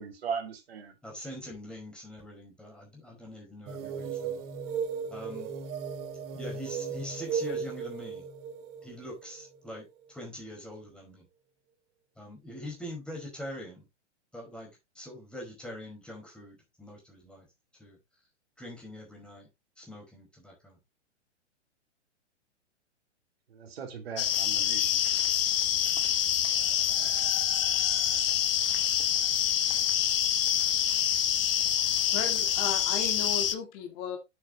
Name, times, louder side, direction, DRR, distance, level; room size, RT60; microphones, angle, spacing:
voice 1, 0.0-0.9 23.5-25.0 26.9-27.1, right 6 dB, 55° right, 2.8 m, -38 dB
voice 2, 1.0-4.4 5.1-5.5 6.3-8.3 8.8-11.3 12.2-13.9 14.3-14.7 14.9-17.5 17.8-18.0 18.6-19.5 19.8-20.8, left 1 dB, 5° left, 4.9 m, -43 dB
sound 1, 3.7-10.1, right 6 dB, 30° right, 1.5 m, -36 dB
sound 2, 24.2-33.6, left 9 dB, 50° left, 1.2 m, -26 dB
voice 3, 31.8-34.2, left 7 dB, 35° left, 2.2 m, -36 dB
8.7 x 8.0 x 3.0 m
figure-of-eight pair, 110°, 36 cm